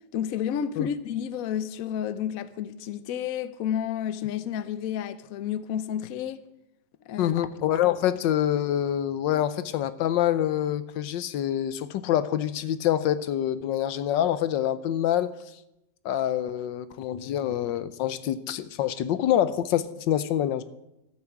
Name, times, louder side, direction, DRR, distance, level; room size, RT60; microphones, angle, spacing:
voice 1, 0.1-6.4 7.1-7.4, left 9 dB, 60° left, 1.0 m, -31 dB
voice 2, 7.2-15.3 16.0-20.6, left 11 dB, 80° left, 1.4 m, -26 dB
13.0 x 8.4 x 7.2 m
omnidirectional pair, 2.0 m